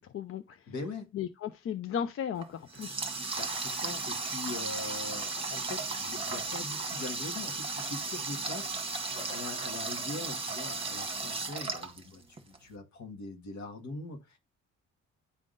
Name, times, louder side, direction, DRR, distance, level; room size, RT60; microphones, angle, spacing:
voice 1, 0.1-0.6 1.1-3.0, left 8 dB, 45° left, 0.5 m, -35 dB
voice 2, 0.7-1.1 3.3-14.4, left 2 dB, 70° left, 1.6 m, -42 dB
Water tap faucet, 2.4-12.6, right 3 dB, 20° right, 1.2 m, -35 dB
10.5 x 3.6 x 2.5 m
cardioid pair, 90°, 30 cm